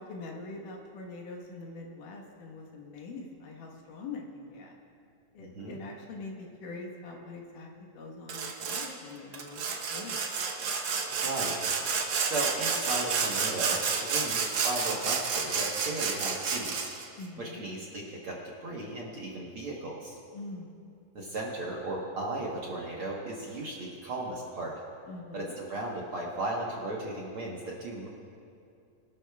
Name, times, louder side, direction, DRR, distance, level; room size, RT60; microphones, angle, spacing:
voice 1, 0.0-4.7 5.3-9.6 9.9-10.2 17.2-17.6 20.3-20.7 25.1-25.5, left 3 dB, 80° left, 1 dB, 2.9 m, -43 dB
voice 2, 5.4-5.8 11.2-11.7 12.3-16.9 17.4-20.2 21.1-24.8 25.3-28.1, right 2 dB, 55° right, -3 dB, 1.6 m, -36 dB
Sawing, 8.3-8.9 9.3-17.0, right 5 dB, 80° right, 1.0 m, -30 dB
23.5 x 12.5 x 2.3 m, 2.5 s
omnidirectional pair, 3.7 m